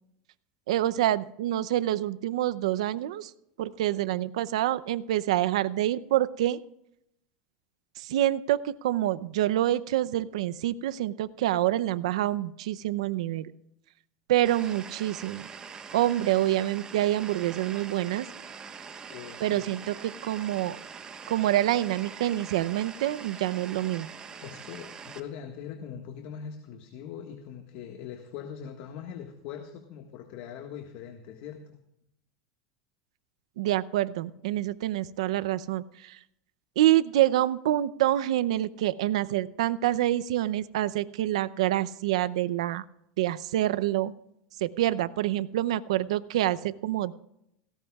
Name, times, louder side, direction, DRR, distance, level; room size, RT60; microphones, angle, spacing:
voice 1, 0.7-3.3 3.6-6.6 8.0-13.5 14.3-15.5 15.9-18.3 19.4-20.8 21.3-24.1 33.6-36.2 36.8-42.8 43.2-44.1 44.6-47.1, right 13 dB, 85° right, 15 dB, 0.6 m, -27 dB
sound 1, 14.4-25.2, right 6 dB, 25° right, 1.2 m, -43 dB
voice 2, 19.1-19.7 24.4-31.8, left 8 dB, 60° left, 4 dB, 1.6 m, -41 dB
17.5 x 17.5 x 2.4 m, 0.78 s
supercardioid pair, 130°, 3 cm